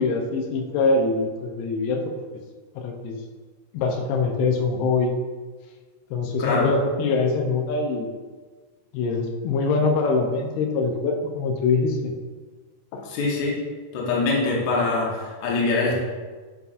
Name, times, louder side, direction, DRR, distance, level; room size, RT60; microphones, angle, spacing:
voice 1, 0.0-2.1 2.8-3.2 3.7-5.1 6.1-8.1 8.9-12.1 12.9-13.0, left 3 dB, 85° left, 2 dB, 2.7 m, -23 dB
voice 2, 13.0-13.6 13.9-15.9, left 3 dB, 60° left, -3 dB, 2.1 m, -23 dB
9.1 x 5.8 x 2.5 m, 1.4 s
omnidirectional pair, 4.7 m